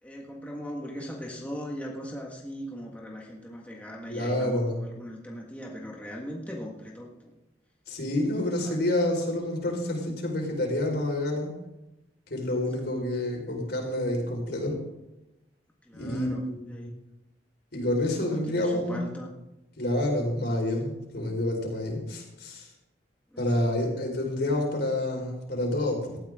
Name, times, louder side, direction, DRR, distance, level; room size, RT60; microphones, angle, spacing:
voice 1, 0.0-7.3 8.6-8.8 12.8-13.1 15.8-16.9 18.2-19.3 23.3-23.6, equal, 10° left, -2 dB, 1.7 m, -39 dB
voice 2, 4.1-4.8 7.9-11.5 12.3-14.8 16.0-16.9 17.7-19.0 19.8-22.7 23.4-26.2, left 1 dB, 65° left, 1 dB, 4.7 m, -28 dB
18.0 x 13.5 x 3.7 m, 0.95 s
head